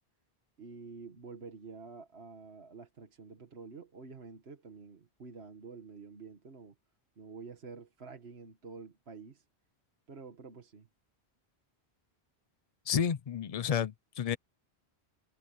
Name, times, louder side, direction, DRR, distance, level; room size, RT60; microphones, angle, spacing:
voice 1, 0.6-6.7 7.2-9.4 10.1-10.9, right 4 dB, 70° right, 1.8 m, -48 dB
voice 2, 12.9-14.4, left 8 dB, 45° left, 0.5 m, -31 dB
omnidirectional pair, 1.1 m